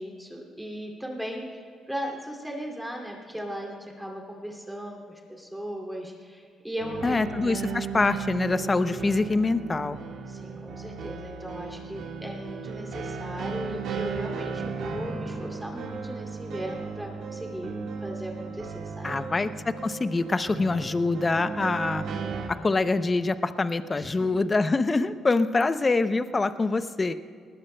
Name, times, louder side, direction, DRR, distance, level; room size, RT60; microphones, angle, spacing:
voice 1, 0.0-7.8 10.3-19.2 23.9-24.3, equal, 5° right, 0 dB, 2.5 m, -37 dB
sound 1, 6.8-22.5, right 5 dB, 80° right, 1.6 m, -36 dB
voice 2, 7.0-10.0 19.0-22.0 22.5-27.1, left 3 dB, 25° left, 12 dB, 0.6 m, -25 dB
20.0 x 19.5 x 2.2 m, 2.3 s
cardioid pair, 90°, 0 cm